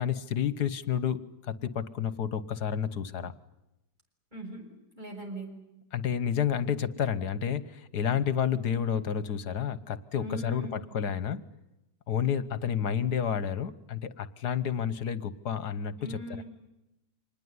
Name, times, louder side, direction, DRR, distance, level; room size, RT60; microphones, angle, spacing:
voice 1, 0.0-3.3 5.9-11.4 12.1-16.4, left 8 dB, 70° left, 16 dB, 1.7 m, -30 dB
voice 2, 4.3-4.7 4.9-5.5 10.1-10.8 16.0-16.4, right 1 dB, 25° right, 2 dB, 7.4 m, -40 dB
26.5 x 21.0 x 9.7 m, 0.91 s
omnidirectional pair, 1.8 m